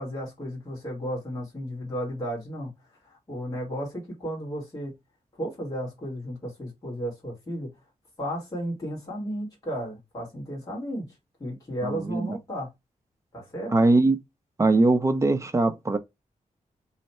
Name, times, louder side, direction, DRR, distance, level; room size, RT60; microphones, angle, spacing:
voice 1, 0.0-2.7 3.0-4.9 5.4-7.7 8.2-11.1 11.4-12.7 13.3-13.7, equal, 25° left, 2.1 m, -34 dB
voice 2, 11.8-12.3 13.7-14.2 14.6-16.0, right 2 dB, 20° right, 0.6 m, -21 dB
3.2 x 2.7 x 4.2 m
wide cardioid pair, 160°, 14 cm